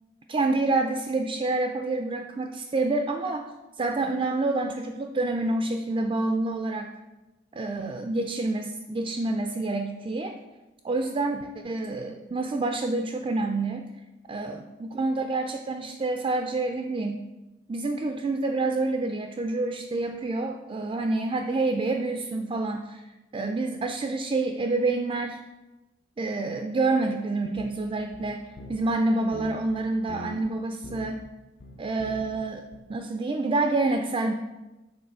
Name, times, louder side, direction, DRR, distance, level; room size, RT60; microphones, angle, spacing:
voice 1, 0.3-3.5 3.8-6.9 7.5-10.4 10.8-13.9 14.3-17.2 17.7-23.0 23.3-25.4 26.2-31.2 31.8-32.6 32.9-34.3, right 2 dB, 30° right, 5 dB, 0.3 m, -27 dB
sound 1, 27.6-29.0 29.3-30.5 30.8-31.3 31.6-32.5 32.7-32.8, left 1 dB, 50° left, 0.5 m, -42 dB
7.1 x 3.8 x 4.7 m, 1.1 s
head